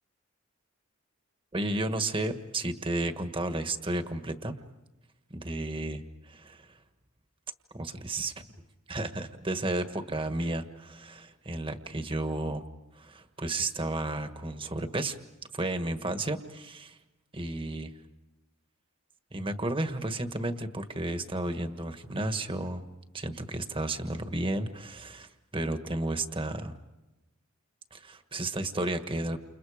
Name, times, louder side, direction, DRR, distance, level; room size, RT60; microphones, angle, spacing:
voice 1, 1.5-4.5 5.3-6.8 7.7-8.3 8.9-12.7 12.9-15.2 15.5-17.0 17.3-17.9 19.3-22.9 23.1-26.8 27.9-29.4, right 2 dB, 25° right, 8 dB, 1.5 m, -32 dB
30.0 x 29.0 x 5.0 m, 1.1 s
head